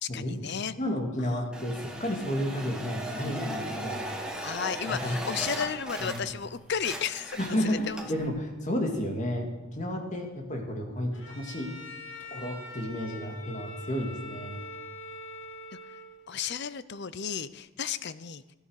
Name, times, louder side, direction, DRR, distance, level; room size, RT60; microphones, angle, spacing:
voice 1, 0.0-0.7 1.2-1.4 4.4-8.0 16.3-18.4, left 7 dB, 55° left, 15 dB, 0.6 m, -33 dB
voice 2, 0.8-4.1 4.9-5.2 6.0-6.2 7.4-11.7 12.3-14.6, equal, 35° left, 2 dB, 2.5 m, -32 dB
sound 1, 1.5-6.5 6.7-8.3, right 1 dB, 5° right, 1.7 m, -37 dB
Bowed string instrument, 11.1-16.4, left 1 dB, 75° left, 2.2 m, -43 dB
17.0 x 9.9 x 6.5 m, 1.1 s
head